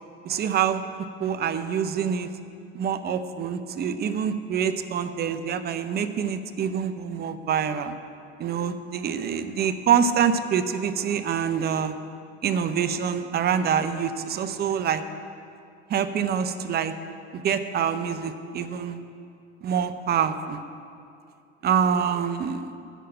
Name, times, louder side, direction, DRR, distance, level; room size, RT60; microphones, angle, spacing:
voice 1, 0.2-0.8 1.2-2.3 2.7-8.0 8.4-11.9 12.4-15.0 15.9-16.9 17.3-19.0 19.6-20.6 21.6-22.7, right 7 dB, 25° right, 9 dB, 0.7 m, -26 dB
9.0 x 6.6 x 8.6 m, 2.5 s
figure-of-eight pair, 75°, 36 cm